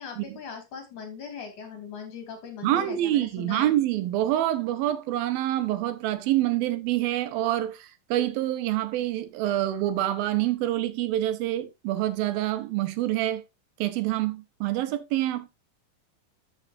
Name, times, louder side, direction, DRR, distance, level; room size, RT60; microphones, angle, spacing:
voice 1, 0.0-3.7, left 6 dB, 60° left, 4.3 m, -40 dB
voice 2, 2.6-13.4 13.8-15.5, right 13 dB, 85° right, 2.9 m, -26 dB
13.0 x 6.6 x 2.5 m
omnidirectional pair, 4.1 m